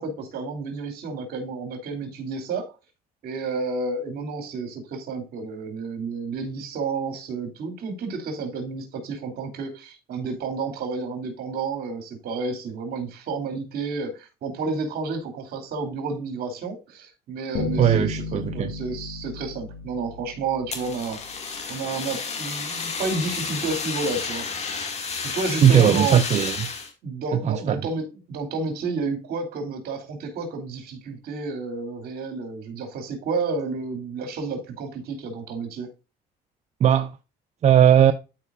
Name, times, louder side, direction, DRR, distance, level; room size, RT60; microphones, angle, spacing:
voice 1, 0.0-2.7 3.2-21.2 21.7-24.5 25.2-26.2 27.0-35.9, right 4 dB, 65° right, 2.7 m, -31 dB
Bass guitar, 17.5-20.6, left 3 dB, 75° left, 2.5 m, -33 dB
voice 2, 17.8-18.7 25.6-26.7 27.3-27.8 36.8-37.1 37.6-38.1, right 9 dB, 40° right, 0.5 m, -18 dB
Fire, 20.7-26.9, left 5 dB, 40° left, 1.9 m, -31 dB
12.5 x 4.7 x 2.4 m
cardioid pair, 110°, 17 cm